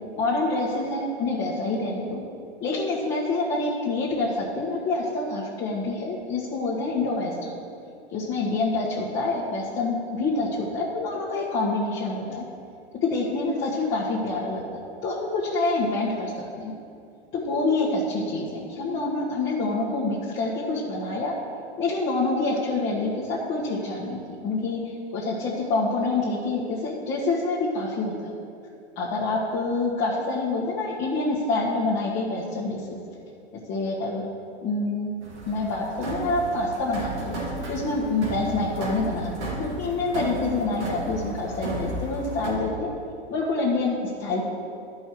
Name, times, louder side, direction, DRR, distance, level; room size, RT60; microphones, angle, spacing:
voice 1, 0.1-2.2 2.6-7.6 8.1-12.4 13.0-16.3 16.6-16.7 17.3-21.3 21.8-28.3 28.9-33.0 33.7-34.2 34.6-35.1 35.5-37.3 37.7-42.9 43.3-44.4, left 3 dB, 35° left, -7 dB, 1.6 m, -27 dB
sound 1, 35.2-42.5, right 1 dB, 90° right, 1.9 m, -34 dB
12.0 x 5.6 x 4.6 m, 2.4 s
hypercardioid pair, 110°, 34 cm